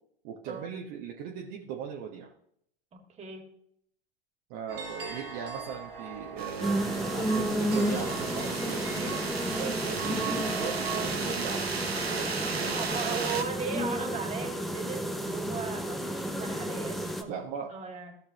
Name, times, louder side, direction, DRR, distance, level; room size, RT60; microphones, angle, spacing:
voice 1, 0.2-2.3 4.5-6.8 7.1-12.3 12.5-13.5 17.3-17.7, right 7 dB, 45° right, 0 dB, 1.2 m, -38 dB
voice 2, 2.9-3.5 12.8-17.4 17.7-18.1, right 5 dB, 20° right, 4 dB, 2.1 m, -37 dB
sound 1, 4.7-11.1, right 6 dB, 65° right, 2.5 m, -39 dB
sound 2, 6.4-13.4, right 4 dB, 85° right, 0.9 m, -35 dB
sound 3, 6.6-17.2, equal, ahead, 0.7 m, -32 dB
15.5 x 6.6 x 3.0 m, 0.69 s
figure-of-eight pair, 90°, 30 cm